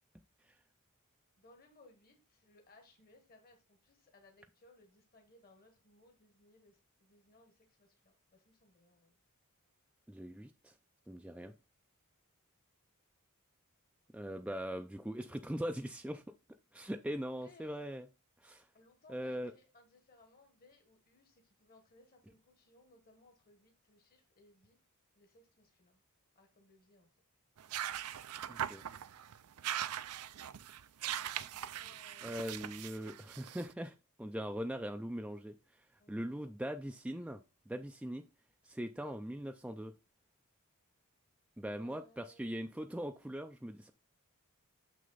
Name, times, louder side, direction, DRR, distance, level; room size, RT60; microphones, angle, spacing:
voice 1, 1.4-9.2 17.3-17.8 18.7-24.8 25.1-26.0 26.3-27.1 28.7-29.1 31.8-32.5 34.5-34.6 36.0-36.5 41.7-42.5, left 2 dB, 45° left, 1.3 m, -64 dB
voice 2, 10.1-10.7 11.1-11.5 14.1-16.2 16.7-18.1 18.4-18.7 19.1-19.5 28.5-28.8 32.2-38.2 38.6-39.9 41.6-43.9, equal, 5° right, 0.4 m, -41 dB
sound 1, 27.6-33.7, right 10 dB, 75° right, 0.5 m, -41 dB
6.8 x 6.3 x 3.9 m
head